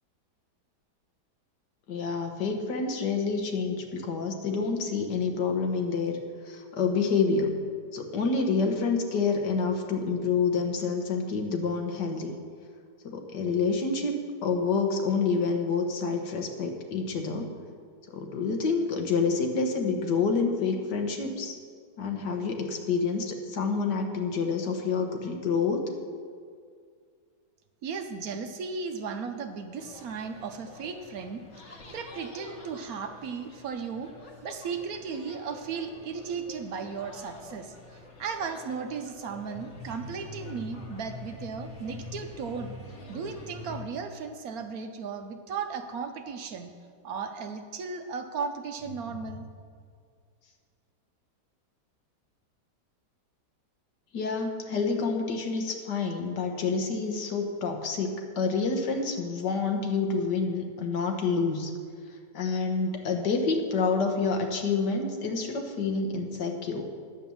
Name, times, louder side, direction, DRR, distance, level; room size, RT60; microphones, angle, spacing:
voice 1, 1.9-6.2 6.5-7.6 7.9-12.3 13.0-17.5 18.1-21.6 22.0-25.9 54.1-61.7 62.3-66.9, left 4 dB, 75° left, 3 dB, 1.7 m, -28 dB
voice 2, 27.8-34.1 34.4-46.7 47.0-49.4, right 5 dB, 65° right, 6 dB, 1.0 m, -36 dB
sound 1, 29.8-43.8, left 2 dB, 45° left, 1.4 m, -45 dB
9.8 x 7.7 x 7.0 m, 2.1 s
omnidirectional pair, 1.8 m